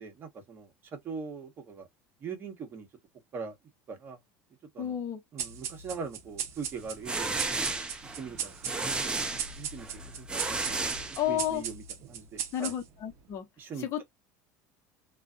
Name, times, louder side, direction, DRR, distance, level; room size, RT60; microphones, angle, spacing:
voice 1, 0.0-1.9 2.2-2.9 3.3-3.6 3.9-4.2 4.7-5.0 5.3-7.5 8.2-10.8 11.2-11.8 12.1-12.7 13.6-14.0, right 5 dB, 35° right, 1.1 m, -41 dB
voice 2, 4.8-5.2 11.2-11.6 12.5-13.5 13.8-14.0, left 11 dB, 45° left, 1.0 m, -31 dB
sound 1, 5.4-13.1, right 8 dB, 50° right, 0.7 m, -39 dB
sound 2, 6.8-11.7, right 3 dB, 15° right, 0.6 m, -34 dB
2.5 x 2.4 x 2.3 m
supercardioid pair, 115°, 6 cm